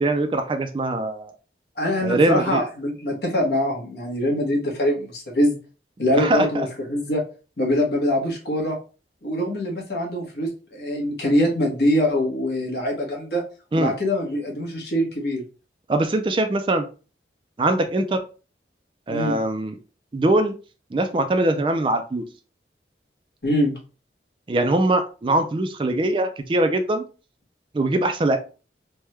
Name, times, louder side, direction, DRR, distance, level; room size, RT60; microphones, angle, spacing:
voice 1, 0.0-1.3 2.0-2.6 6.1-6.6 13.7-13.9 15.9-16.9 17.6-18.2 19.1-19.8 20.1-20.5 20.9-22.2 24.5-27.0 27.7-28.4, right 2 dB, 30° right, 7 dB, 0.3 m, -22 dB
voice 2, 1.8-5.6 6.0-7.2 7.6-8.8 9.2-13.4 13.7-15.4 19.1-19.4 23.4-23.8, equal, 65° left, -1 dB, 1.1 m, -23 dB
3.4 x 2.2 x 3.0 m, 0.34 s
head